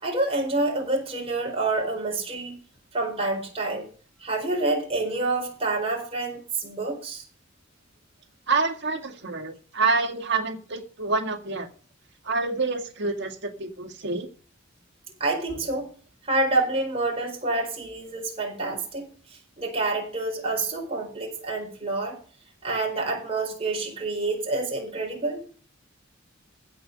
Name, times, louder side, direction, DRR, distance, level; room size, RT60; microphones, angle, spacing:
voice 1, 0.0-2.5 2.9-3.9 4.2-7.2 15.2-15.9 16.2-19.1 19.6-22.2 22.6-25.4, right 2 dB, 30° right, 0 dB, 4.4 m, -27 dB
voice 2, 8.5-11.7 12.2-14.3, right 4 dB, 60° right, 4 dB, 1.9 m, -27 dB
16.0 x 6.1 x 6.6 m, 0.40 s
head